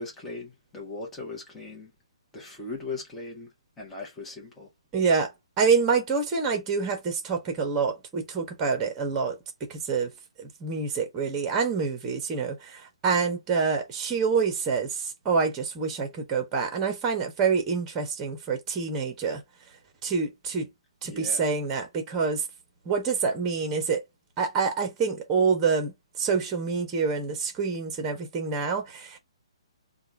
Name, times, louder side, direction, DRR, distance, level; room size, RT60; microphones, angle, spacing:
voice 1, 0.0-1.9 2.3-4.7 21.1-21.5, left 3 dB, 10° left, 1.4 m, -39 dB
voice 2, 4.9-5.3 5.6-9.4 9.7-10.1 10.4-19.4 20.0-20.7 21.0-22.4 22.8-24.0 24.4-29.2, right 5 dB, 20° right, 1.2 m, -27 dB
3.7 x 2.5 x 4.4 m
figure-of-eight pair, 130°, 3 cm